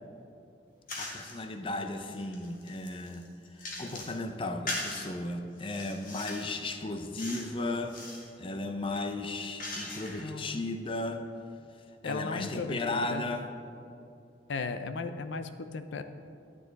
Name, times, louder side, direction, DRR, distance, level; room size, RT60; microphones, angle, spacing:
sound 1, 0.9-1.4 1.9-4.2 4.7-5.1 5.6-6.5 7.2-7.5 7.8-8.3 8.9-10.3, left 2 dB, 45° left, 1.8 m, -40 dB
voice 1, 1.0-3.3 3.6-11.2 12.0-13.5, left 2 dB, 30° left, 6 dB, 0.6 m, -35 dB
voice 2, 10.2-10.6 12.0-13.2 14.5-16.0, left 4 dB, 75° left, 10 dB, 0.6 m, -36 dB
12.0 x 9.9 x 4.0 m, 2.6 s
head